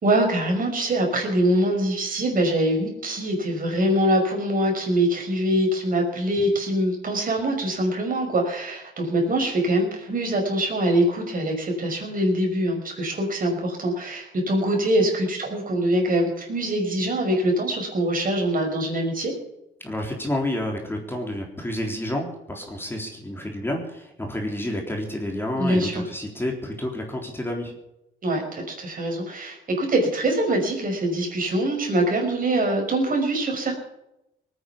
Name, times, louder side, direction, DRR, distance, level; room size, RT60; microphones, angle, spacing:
voice 1, 0.0-19.3 25.6-26.0 28.2-33.7, right 1 dB, 45° right, 2 dB, 5.7 m, -23 dB
voice 2, 19.8-27.7, left 1 dB, 10° left, 1 dB, 3.7 m, -29 dB
19.5 x 9.5 x 7.2 m, 0.87 s
cardioid pair, 90°, 20 cm